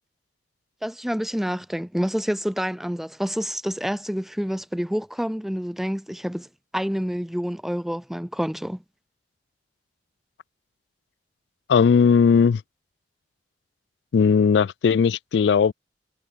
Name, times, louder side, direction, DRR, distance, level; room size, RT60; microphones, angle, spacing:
voice 1, 0.8-6.5 6.7-8.8, equal, ahead, 0.4 m, -28 dB
voice 2, 11.7-12.6 14.1-15.7, left 6 dB, 70° left, 0.3 m, -18 dB
head